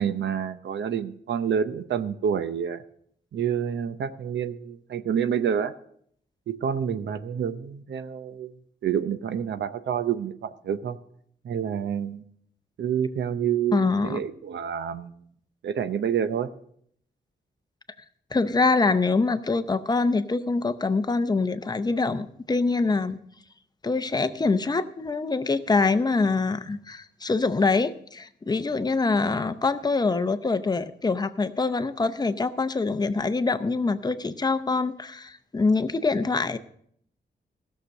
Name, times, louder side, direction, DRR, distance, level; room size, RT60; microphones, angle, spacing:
voice 1, 0.0-2.8 3.3-5.7 6.5-8.5 8.8-11.0 11.4-12.2 12.8-15.1 15.6-16.5, right 8 dB, 85° right, 12 dB, 0.7 m, -28 dB
voice 2, 13.7-14.2 18.3-23.2 23.8-36.6, left 3 dB, 20° left, 11 dB, 0.6 m, -24 dB
16.5 x 6.6 x 6.4 m, 0.65 s
wide cardioid pair, 140°, 18 cm